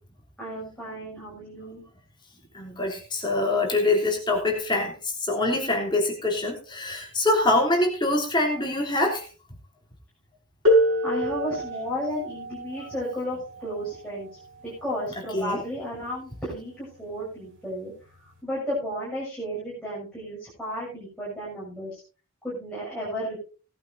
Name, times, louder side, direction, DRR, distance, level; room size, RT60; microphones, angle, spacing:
voice 1, 0.4-1.8 11.0-14.3 14.8-17.9 18.4-22.0 22.4-23.4, equal, 5° left, -8 dB, 7.1 m, -33 dB
voice 2, 2.5-9.2 15.3-15.6, left 2 dB, 20° left, 0 dB, 3.2 m, -24 dB
sound 1, 10.7-16.1 17.1-17.2 18.1-18.3, equal, 65° right, 4.8 m, -27 dB
18.5 x 11.5 x 2.7 m, 0.35 s
head